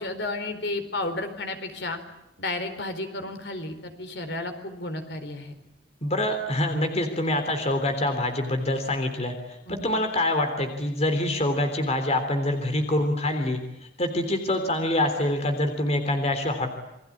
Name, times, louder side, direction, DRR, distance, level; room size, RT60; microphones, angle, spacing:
voice 1, 0.0-2.0 2.4-5.5 9.7-9.9, left 2 dB, 65° left, 8 dB, 4.3 m, -32 dB
voice 2, 6.0-13.6 14.0-16.8, left 1 dB, 35° left, 7 dB, 3.4 m, -25 dB
29.0 x 23.0 x 8.7 m, 0.91 s
head